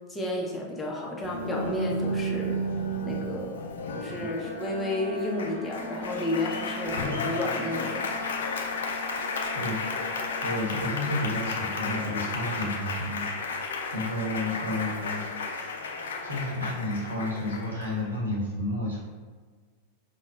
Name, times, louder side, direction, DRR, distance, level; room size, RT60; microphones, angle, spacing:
voice 1, 0.1-2.6 3.0-3.5 3.9-8.0, left 1 dB, 10° left, -2 dB, 0.5 m, -32 dB
Applause, 1.2-18.2, left 2 dB, 65° left, 0.4 m, -33 dB
Wind instrument woodwind instrument, 4.4-10.5, right 1 dB, 15° right, 1.3 m, -41 dB
voice 2, 9.5-15.8 16.2-19.0, left 1 dB, 75° right, -4 dB, 0.9 m, -32 dB
5.2 x 2.0 x 2.2 m, 1.5 s
figure-of-eight pair, 90°, 0 cm